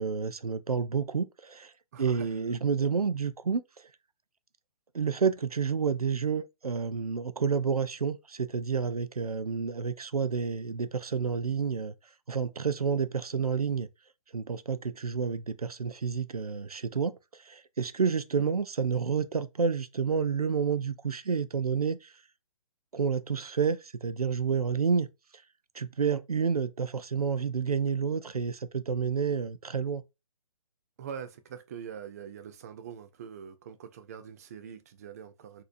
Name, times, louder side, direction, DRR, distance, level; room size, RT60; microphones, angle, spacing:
voice 1, 0.0-1.7 2.0-3.6 4.9-11.9 12.3-13.9 14.3-17.1 17.5-22.0 22.9-25.1 25.7-30.0, right 6 dB, 90° right, 0.5 m, -29 dB
voice 2, 1.9-2.3 31.0-35.6, right 8 dB, 25° right, 0.3 m, -43 dB
4.1 x 2.7 x 2.5 m
figure-of-eight pair, 135°, 19 cm